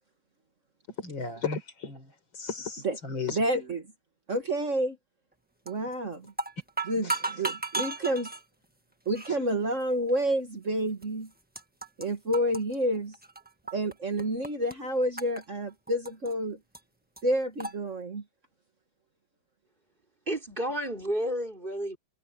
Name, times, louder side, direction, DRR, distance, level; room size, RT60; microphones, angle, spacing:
voice 1, 1.0-3.4 7.0-7.2 9.3-9.4, left 5 dB, 85° left, 4.8 m, -35 dB
voice 2, 3.4-3.8 4.3-5.0 5.7-6.3 6.9-7.1 7.3-8.3 9.1-11.3 12.0-13.1 13.7-16.6 17.2-18.2, right 1 dB, 40° right, 2.0 m, -29 dB
sound 1, 5.7-6.0 6.3-8.4 9.1-9.3 10.1-10.2 11.0-11.1 11.3-12.1 12.3-13.9 14.2-14.7 15.2-16.3 16.7-16.8 17.2-17.3 17.6-17.7, right 3 dB, 5° right, 1.2 m, -34 dB
voice 3, 20.3-22.0, equal, 25° right, 4.7 m, -31 dB
omnidirectional pair, 2.1 m